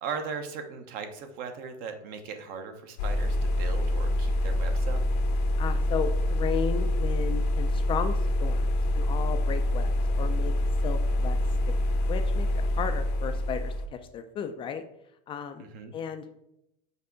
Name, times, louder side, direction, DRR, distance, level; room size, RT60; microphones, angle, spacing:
voice 1, 0.0-5.0 15.6-15.9, right 5 dB, 45° right, 7 dB, 0.9 m, -38 dB
sound 1, 3.0-13.9, left 1 dB, 70° left, 0.9 m, -26 dB
voice 2, 5.6-10.5 10.8-11.4 12.1-12.5 12.8-13.7 14.1-14.8 15.3-15.6 15.9-16.4, left 7 dB, 25° left, 7 dB, 0.4 m, -34 dB
5.5 x 4.6 x 3.9 m, 0.82 s
supercardioid pair, 145°, 21 cm